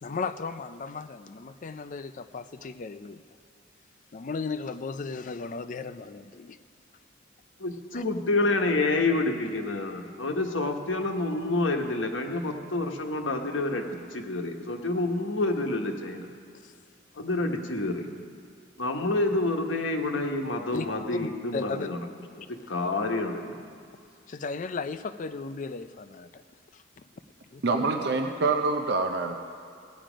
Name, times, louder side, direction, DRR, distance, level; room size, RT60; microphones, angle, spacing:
voice 1, 0.0-3.2 4.1-6.6 7.9-8.0 16.6-16.7 20.7-21.9 22.3-22.5 24.3-26.4 26.7-26.8 27.5-27.6, left 4 dB, 40° left, 11 dB, 0.4 m, -36 dB
voice 2, 7.6-16.3 17.2-18.1 18.8-22.0 22.7-23.5, left 2 dB, 80° left, 3 dB, 1.1 m, -28 dB
voice 3, 27.6-29.3, right 3 dB, 60° right, 5 dB, 0.6 m, -26 dB
16.5 x 9.0 x 5.1 m, 2.2 s
head